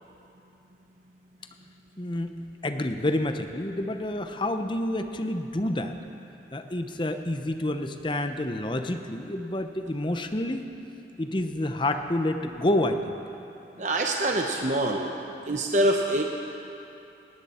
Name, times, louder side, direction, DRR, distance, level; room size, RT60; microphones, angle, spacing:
voice 1, 2.0-2.3 2.6-5.9 6.5-10.6 11.2-13.2, left 1 dB, 25° left, 7 dB, 0.7 m, -28 dB
voice 2, 13.8-15.1 15.5-16.2, right 1 dB, 40° right, 1 dB, 0.8 m, -25 dB
18.5 x 17.5 x 4.3 m, 2.9 s
head